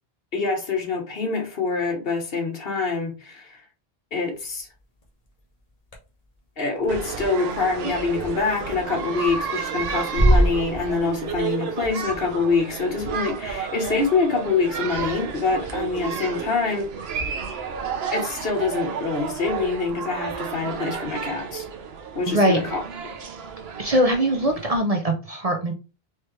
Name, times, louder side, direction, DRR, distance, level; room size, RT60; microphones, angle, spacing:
voice 1, 0.3-3.6 4.1-4.7 6.6-17.3 18.1-21.6 22.1-22.8, left 4 dB, 60° left, 1.4 m, -25 dB
sound 1, 5.0-5.1 5.9-6.0 6.8-6.9 8.4-8.8 9.1-9.6 9.9-11.1 11.4-11.5 11.7-12.0, right 1 dB, 35° left, 1.1 m, -21 dB
sound 2, 6.9-24.8, right 6 dB, 70° right, 1.0 m, -32 dB
voice 2, 22.3-22.6 23.8-25.7, right 1 dB, 40° right, 0.6 m, -21 dB
4.3 x 3.2 x 3.2 m
omnidirectional pair, 1.1 m